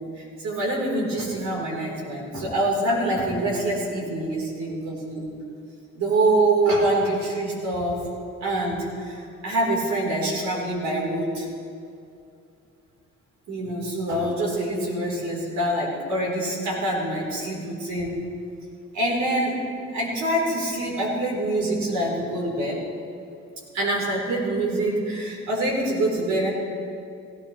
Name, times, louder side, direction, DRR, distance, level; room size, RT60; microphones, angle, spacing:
voice 1, 0.0-5.2 5.9-8.1 8.4-11.5 13.5-18.2 18.9-19.6 19.9-22.8 23.7-26.5, right 1 dB, 65° right, -2 dB, 4.1 m, -25 dB
17.5 x 15.0 x 3.3 m, 2.6 s
cardioid pair, 90°, 30 cm